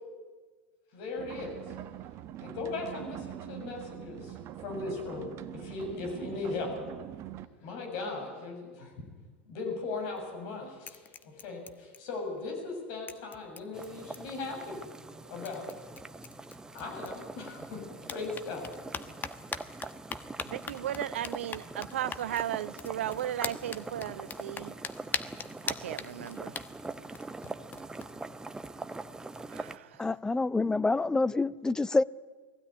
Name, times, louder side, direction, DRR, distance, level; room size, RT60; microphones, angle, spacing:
voice 1, 0.9-1.8 2.4-6.7 7.6-8.9 9.5-14.8 15.3-15.8 16.7-17.8 18.1-18.6, left 3 dB, 60° left, 7.3 m, -38 dB
sound 1, 1.2-7.4, right 12 dB, 45° right, 1.1 m, -43 dB
sound 2, 10.0-10.5 10.8-12.4 12.7-12.8 13.1-14.5 15.1-15.2 15.5-17.6 18.0-28.1, left 6 dB, 30° left, 1.2 m, -42 dB
sound 3, 13.7-29.8, right 3 dB, 10° right, 0.9 m, -43 dB
voice 2, 20.5-24.7 25.6-26.5 29.5-29.9, right 11 dB, 80° right, 0.8 m, -35 dB
voice 3, 30.0-32.0, left 3 dB, 10° left, 0.5 m, -27 dB
20.5 x 15.5 x 9.9 m
hypercardioid pair, 95°, 6 cm